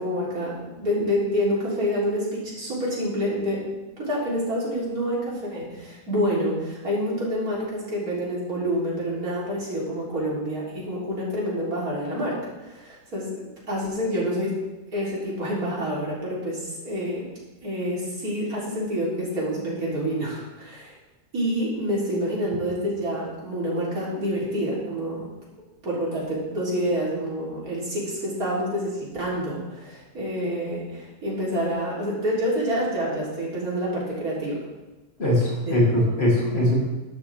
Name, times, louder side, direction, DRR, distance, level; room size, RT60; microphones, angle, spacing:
voice 1, 0.0-3.6 4.0-13.4 13.7-14.5 14.9-17.3 17.6-20.9 21.3-25.3 25.8-34.6 35.6-35.7, equal, 65° right, -6 dB, 4.2 m, -27 dB
voice 2, 35.2-36.8, left 1 dB, 40° left, -5 dB, 3.5 m, -21 dB
12.5 x 12.0 x 3.6 m, 1.1 s
omnidirectional pair, 1.7 m